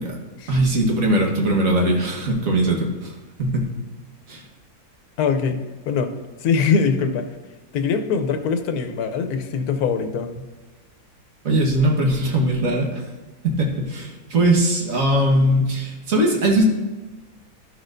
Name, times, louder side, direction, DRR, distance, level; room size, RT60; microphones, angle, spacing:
voice 1, 0.5-3.1 3.4-3.7 4.3-4.4 11.4-13.0 13.4-16.6, right 1 dB, 60° right, 0 dB, 1.7 m, -20 dB
voice 2, 5.2-5.6 5.9-6.1 6.4-7.3 7.7-10.4, left 5 dB, 85° left, 8 dB, 1.2 m, -22 dB
12.5 x 6.3 x 2.6 m, 1.2 s
omnidirectional pair, 1.6 m